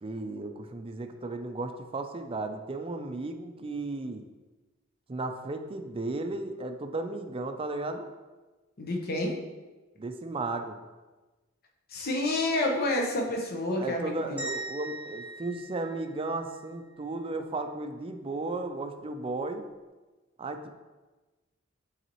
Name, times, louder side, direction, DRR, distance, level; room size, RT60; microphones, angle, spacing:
voice 1, 0.0-4.2 5.1-8.1 10.0-10.8 13.8-19.7 20.4-20.7, right 2 dB, 25° right, 6 dB, 0.4 m, -35 dB
voice 2, 8.8-9.3 11.9-14.4, left 1 dB, 50° left, 1 dB, 0.8 m, -29 dB
sound 1, 14.4-16.6, right 2 dB, 10° right, 0.9 m, -40 dB
8.2 x 4.0 x 3.0 m, 1.2 s
head